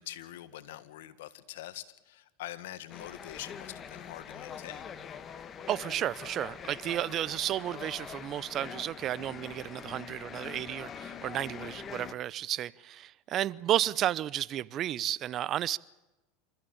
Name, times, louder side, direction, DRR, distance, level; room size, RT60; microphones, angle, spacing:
voice 1, 0.0-4.9, left 13 dB, 75° left, 12 dB, 1.7 m, -44 dB
sound 1, 2.9-12.1, left 7 dB, 30° left, 1.5 m, -44 dB
voice 2, 5.7-15.8, right 12 dB, 40° right, 21 dB, 0.7 m, -32 dB
28.0 x 14.0 x 8.8 m, 1.1 s
supercardioid pair, 110°, 0 cm